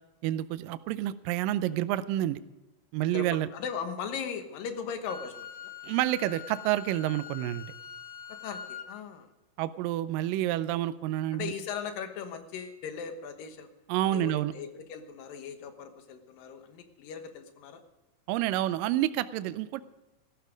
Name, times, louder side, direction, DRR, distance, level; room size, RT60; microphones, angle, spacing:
voice 1, 0.2-2.4 2.9-3.5 5.8-7.7 9.6-11.5 13.9-14.5 18.3-19.8, right 14 dB, 85° right, 14 dB, 2.3 m, -29 dB
voice 2, 3.1-5.7 8.3-9.3 11.3-13.7 14.1-17.8, left 7 dB, 85° left, 8 dB, 3.1 m, -38 dB
Wind instrument woodwind instrument, 5.1-8.9, left 9 dB, 65° left, 2.3 m, -43 dB
15.0 x 12.5 x 5.1 m, 1.1 s
omnidirectional pair, 3.9 m